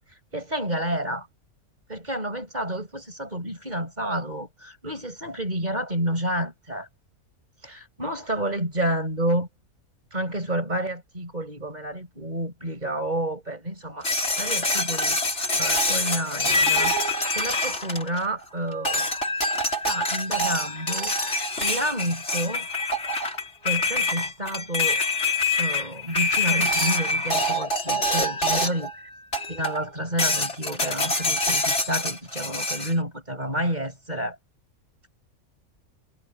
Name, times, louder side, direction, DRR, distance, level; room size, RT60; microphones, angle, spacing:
voice 1, 0.3-1.3 1.9-6.9 7.6-9.5 10.1-15.2 15.5-16.9 17.3-19.3 19.8-21.1 21.6-22.7 23.6-25.0 25.6-28.9 29.5-34.4, right 1 dB, 30° right, 6.2 m, -30 dB
sound 1, 14.0-18.4 18.9-28.9 29.3-29.8 30.2-32.9, left 2 dB, 50° left, 5.6 m, -25 dB
omnidirectional pair, 1.5 m